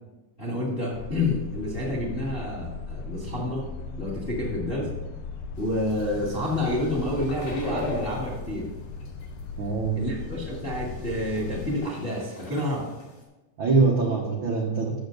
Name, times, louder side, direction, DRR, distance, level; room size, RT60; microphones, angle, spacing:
voice 1, 0.4-3.6 4.0-4.9 5.6-8.7 9.9-12.9, left 1 dB, 25° left, -3 dB, 1.2 m, -29 dB
sound 1, 0.9-11.8, left 4 dB, 80° left, 2.4 m, -37 dB
sound 2, 5.6-8.6 9.0-9.4 10.0-10.1 10.4-13.2, left 1 dB, 60° left, 3.6 m, -40 dB
voice 2, 9.6-10.0 13.6-15.0, right 4 dB, 80° right, -1 dB, 1.1 m, -23 dB
13.5 x 6.5 x 3.9 m, 1.0 s
omnidirectional pair, 4.0 m